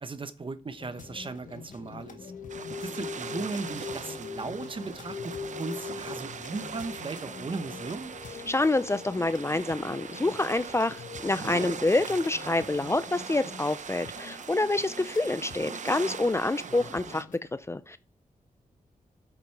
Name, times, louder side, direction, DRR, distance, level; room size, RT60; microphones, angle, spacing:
voice 1, 0.0-2.3 2.8-8.1, right 3 dB, 35° right, 1.0 m, -37 dB
sound 1, 0.8-13.1, left 6 dB, 85° left, 2.7 m, -43 dB
sound 2, 0.8-17.4, left 5 dB, 65° left, 1.4 m, -49 dB
sound 3, 2.5-17.2, right 6 dB, 60° right, 0.7 m, -41 dB
voice 2, 8.5-17.3 17.7-18.0, left 2 dB, 20° left, 0.5 m, -27 dB
10.0 x 8.1 x 4.7 m
cardioid pair, 85°, 14 cm